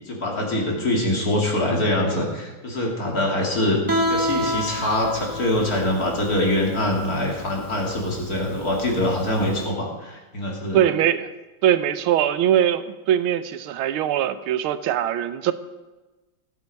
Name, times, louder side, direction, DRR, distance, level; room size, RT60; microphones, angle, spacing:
voice 1, 0.1-3.8 4.1-10.8, left 1 dB, 40° left, -1 dB, 2.7 m, -24 dB
Guitar, 3.9-9.6, equal, 10° right, 1.3 m, -29 dB
voice 2, 10.7-11.3 11.6-15.5, right 10 dB, 75° right, 13 dB, 1.5 m, -21 dB
16.5 x 8.3 x 5.3 m, 1.1 s
omnidirectional pair, 2.4 m